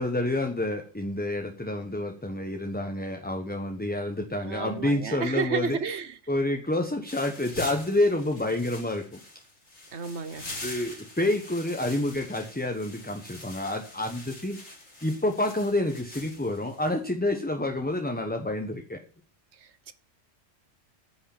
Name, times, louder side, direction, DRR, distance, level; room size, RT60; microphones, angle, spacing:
voice 1, 0.0-5.8 6.3-9.2 10.6-14.6 15.0-19.0, left 1 dB, 10° left, 1.1 m, -28 dB
voice 2, 4.4-6.2 9.9-10.5 19.9-20.0, right 6 dB, 60° right, 1.2 m, -31 dB
sound 1, 7.1-16.9, left 2 dB, 85° left, 4.3 m, -44 dB
9.9 x 6.6 x 7.2 m
omnidirectional pair, 1.3 m